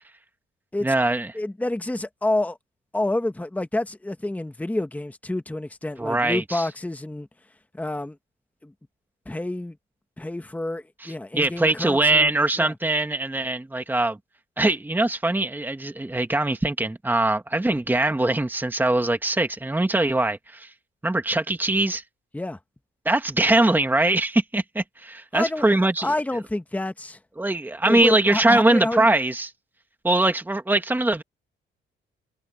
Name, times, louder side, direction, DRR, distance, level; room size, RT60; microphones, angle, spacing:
voice 1, 0.8-1.3 6.0-6.7 11.0-14.2 14.6-20.7 21.0-22.0 23.1-26.1 27.4-29.5 30.0-31.2, right 2 dB, 10° right, 1.7 m, -22 dB
voice 2, 1.3-2.6 2.9-7.3 7.7-8.2 8.6-8.7 9.3-9.8 10.2-12.3 12.6-12.7 22.3-22.6 25.3-25.7 26.0-27.2 27.9-29.0, left 1 dB, 5° left, 1.3 m, -28 dB
cardioid pair, 90°, 20 cm